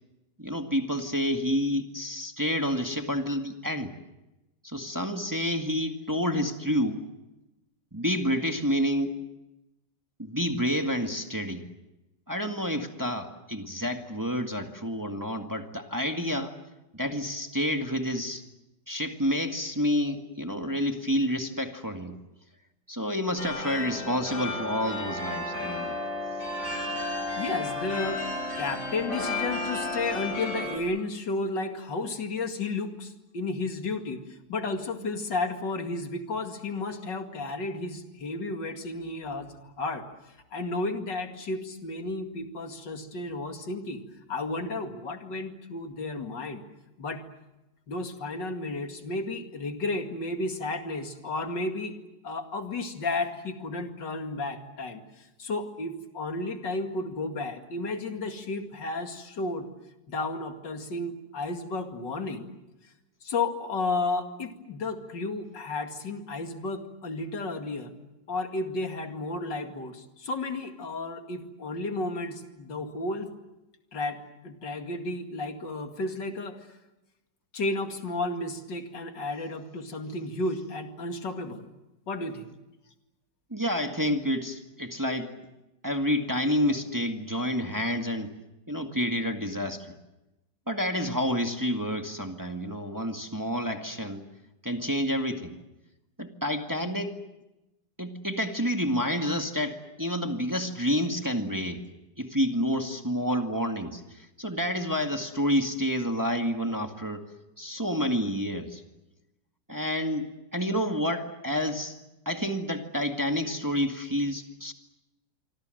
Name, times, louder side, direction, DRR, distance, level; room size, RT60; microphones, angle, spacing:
voice 1, 0.4-3.9 4.6-7.1 7.9-9.2 10.2-11.7 12.3-16.6 16.9-18.4 18.9-22.2 22.9-26.0 83.5-85.3 85.8-88.3 88.7-90.0 90.7-94.3 94.6-95.6 96.2-97.2 98.0-101.8 102.2-107.3 107.6-108.8 109.7-112.0 112.3-114.7, equal, 10° right, 5 dB, 1.8 m, -29 dB
sound 1, 23.4-30.8, left 2 dB, 45° left, 6.5 m, -33 dB
voice 2, 27.3-28.2 28.6-40.1 40.5-44.0 44.3-46.6 47.0-47.2 47.9-52.0 52.2-59.7 60.1-62.5 63.2-68.0 68.3-73.3 73.9-76.6 77.5-81.7 82.1-82.5, left 2 dB, 85° left, 6 dB, 2.9 m, -33 dB
26.5 x 24.5 x 7.8 m, 0.97 s
omnidirectional pair, 1.9 m